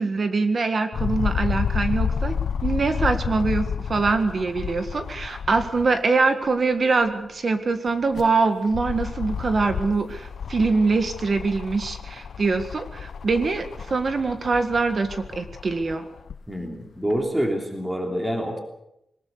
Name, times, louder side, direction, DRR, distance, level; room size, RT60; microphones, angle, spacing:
voice 1, 0.0-2.4 2.6-16.1, right 4 dB, 45° right, 8 dB, 1.8 m, -23 dB
sound 1, 0.9-6.0 6.4-6.5 7.9-16.4 17.2-17.3, left 7 dB, 80° left, 0.7 m, -30 dB
voice 2, 16.5-18.6, equal, 10° right, 2 dB, 3.2 m, -26 dB
21.5 x 20.0 x 6.7 m, 0.82 s
wide cardioid pair, 140°, 0 cm